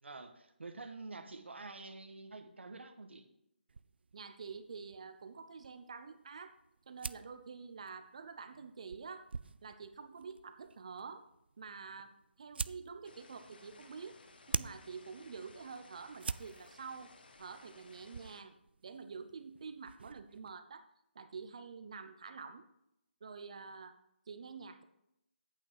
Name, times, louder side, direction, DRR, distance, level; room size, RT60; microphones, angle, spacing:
voice 1, 0.0-3.2, right 3 dB, 90° right, 7 dB, 1.4 m, -48 dB
sound 1, 3.7-20.6, right 5 dB, 65° right, 0.3 m, -47 dB
voice 2, 4.1-6.6 6.9-9.3 9.6-11.2 11.6-14.2 14.5-17.1 17.4-18.5 18.8-20.8 21.1-22.7 23.2-24.0 24.3-24.8, right 5 dB, 35° right, 9 dB, 0.7 m, -48 dB
sound 2, 13.0-18.4, left 3 dB, 55° left, 1.1 m, -60 dB
8.9 x 7.9 x 4.8 m, 0.82 s
hypercardioid pair, 175°, 6 cm